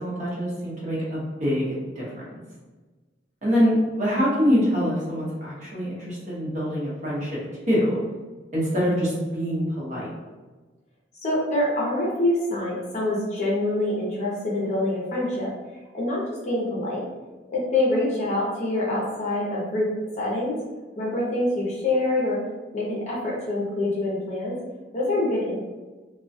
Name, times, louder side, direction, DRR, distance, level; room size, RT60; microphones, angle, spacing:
voice 1, 0.0-2.2 3.4-7.4 7.7-8.0 8.5-10.1, equal, 40° right, -7 dB, 0.9 m, -25 dB
voice 2, 11.2-15.5 15.9-17.0 17.5-19.9 20.2-20.6 21.0-22.4 22.7-24.5 24.9-25.5, left 1 dB, 40° left, -5 dB, 0.6 m, -25 dB
2.2 x 2.2 x 2.6 m, 1.3 s
head